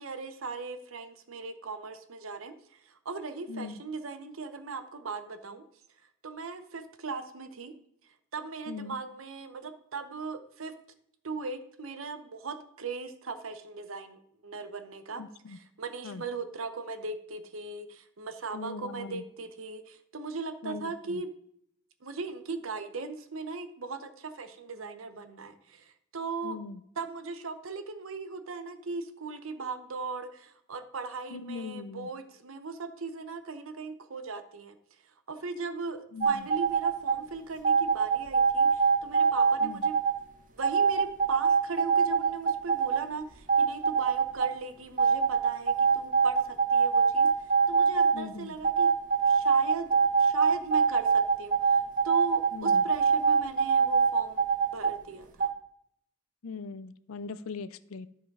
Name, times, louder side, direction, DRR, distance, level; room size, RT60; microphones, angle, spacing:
voice 1, 0.0-5.6 6.2-7.7 8.3-10.7 11.2-15.2 15.5-21.3 22.0-26.6 27.0-34.7 35.3-40.0 40.5-47.3 47.7-48.9 49.3-54.4 54.7-55.5, right 4 dB, 75° right, 9 dB, 0.8 m, -38 dB
voice 2, 3.5-3.8 8.7-9.0 15.2-15.6 16.0-16.2 18.5-19.2 20.6-21.2 26.4-26.8 31.3-32.1 36.1-36.5 39.6-39.9 48.1-48.5 52.5-52.8 56.4-58.1, left 4 dB, 85° left, 15 dB, 0.5 m, -40 dB
sound 1, 36.2-37.2 37.6-40.1 40.6-43.0 43.3-44.5 45.0-48.2 48.6-54.9 55.4-55.5, right 5 dB, 40° right, 0.9 m, -23 dB
11.5 x 5.0 x 4.7 m, 0.69 s
head